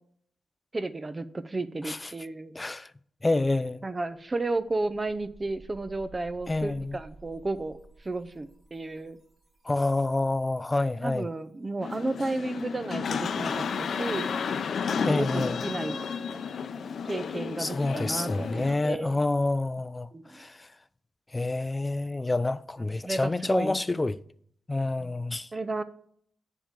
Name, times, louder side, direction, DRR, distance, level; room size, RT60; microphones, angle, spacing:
voice 1, 0.7-2.5 3.8-9.2 11.0-14.3 14.9-16.1 17.0-19.2 20.1-20.4 23.0-23.8 25.0-25.1 25.5-25.8, right 2 dB, 30° right, 0.6 m, -33 dB
voice 2, 2.6-2.9 3.2-3.8 6.5-7.0 9.7-11.3 15.0-15.6 17.6-20.7 21.3-24.2 24.7-25.5, left 2 dB, 25° left, 0.5 m, -28 dB
sound 1, 4.3-10.8, right 3 dB, 50° right, 3.1 m, -54 dB
sound 2, 11.8-18.8, left 6 dB, 65° left, 0.6 m, -32 dB
9.9 x 3.7 x 7.0 m
supercardioid pair, 55°, 0 cm